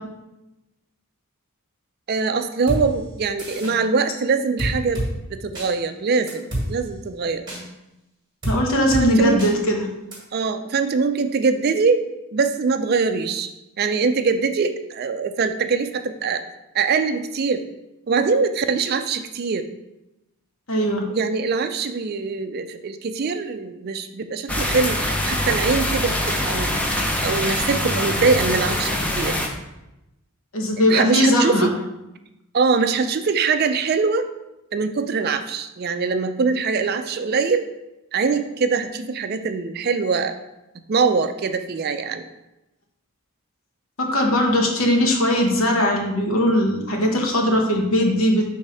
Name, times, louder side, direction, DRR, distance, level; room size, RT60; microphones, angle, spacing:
voice 1, 2.1-5.0 5.3-7.4 9.0-9.4 10.3-13.5 13.8-16.4 16.7-17.6 18.1-19.6 21.1-26.8 27.2-29.4 30.9-31.7 32.5-34.3 34.7-37.7 38.1-40.4 40.9-42.3, right 4 dB, 45° right, 9 dB, 0.4 m, -23 dB
sound 1, 2.7-2.8 3.4-3.8 4.6-5.1 5.6-5.7 6.3-6.7 7.5-7.6 8.4-8.6 8.9-9.1 9.4-9.5 10.1-10.2, right 1 dB, 20° right, 1.7 m, -26 dB
voice 2, 8.5-9.9 20.7-21.1 30.5-31.7 44.0-48.4, equal, 65° left, 1 dB, 1.0 m, -19 dB
sound 2, 24.5-29.5, left 1 dB, 5° left, 0.5 m, -23 dB
5.1 x 3.5 x 5.5 m, 0.95 s
head